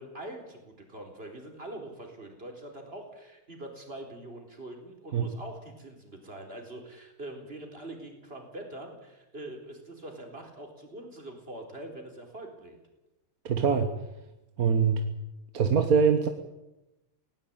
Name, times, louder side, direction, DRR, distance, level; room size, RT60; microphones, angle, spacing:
voice 1, 0.0-12.8, right 1 dB, 25° right, 3 dB, 4.4 m, -43 dB
voice 2, 13.4-13.9 14.6-15.0 15.5-16.3, right 6 dB, 45° right, 7 dB, 1.5 m, -23 dB
19.0 x 17.5 x 8.8 m, 0.97 s
omnidirectional pair, 2.4 m